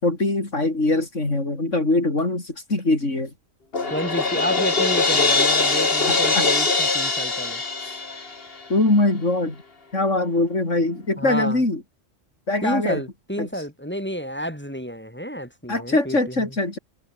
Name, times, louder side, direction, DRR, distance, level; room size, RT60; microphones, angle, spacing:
voice 1, 0.0-3.3 6.1-6.5 8.7-9.6 9.9-11.8 12.5-13.0 13.4-13.5 15.7-16.8, left 2 dB, 85° left, 5.4 m, -22 dB
Crash cymbal, 3.7-8.7, left 3 dB, 50° left, 2.5 m, -22 dB
voice 2, 3.9-8.0 11.2-11.6 12.6-16.4, equal, 10° left, 7.4 m, -30 dB
omnidirectional pair, 1.2 m